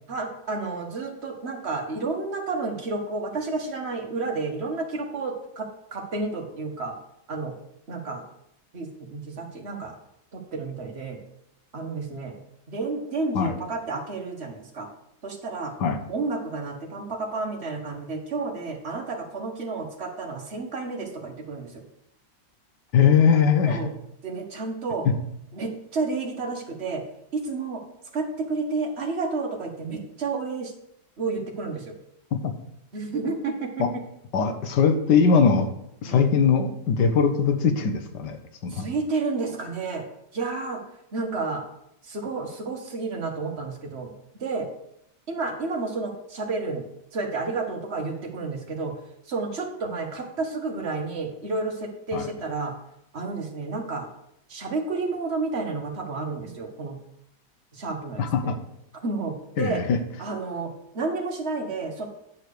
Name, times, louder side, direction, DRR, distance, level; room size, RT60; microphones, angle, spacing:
voice 1, 0.1-7.0 7.3-7.5 7.9-8.2 8.7-9.9 10.3-11.2 11.7-12.4 12.7-14.9 15.2-15.7 16.1-21.8 23.7-23.9 24.2-25.1 25.5-27.0 27.3-27.8 28.1-30.7 31.2-31.9 32.9-33.9 36.0-36.3 38.7-40.0 40.3-40.8 41.1-41.6 42.0-44.1 44.4-44.7 45.3-46.8 47.1-48.9 49.3-52.7 53.1-54.1 54.5-57.0 57.7-58.5 59.0-59.8 60.2-62.1, right 3 dB, 40° right, 2 dB, 1.6 m, -31 dB
voice 2, 22.9-23.8 32.4-32.5 33.8-33.9 34.3-35.7 36.0-38.4 38.6-38.9 52.1-52.3 58.2-58.6 59.6-60.0, left 6 dB, 75° left, 6 dB, 1.6 m, -21 dB
9.7 x 4.7 x 6.7 m, 0.78 s
omnidirectional pair, 1.9 m